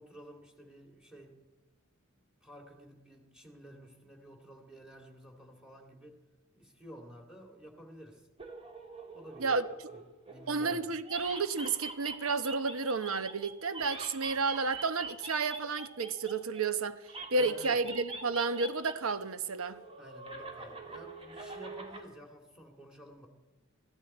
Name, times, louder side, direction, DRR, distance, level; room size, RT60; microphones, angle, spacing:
voice 1, 0.0-1.4 2.4-6.2 6.5-8.3 9.1-9.5 9.9-10.0 10.3-10.9 17.3-17.8 20.0-23.3, equal, 5° right, 2.3 m, -52 dB
sound 1, 8.4-10.8 11.0-16.6 17.1-19.2 19.4-22.0, right 3 dB, 30° right, 2.0 m, -44 dB
voice 2, 10.5-17.0 17.3-19.8, right 4 dB, 75° right, 0.9 m, -31 dB
21.5 x 15.5 x 4.3 m
head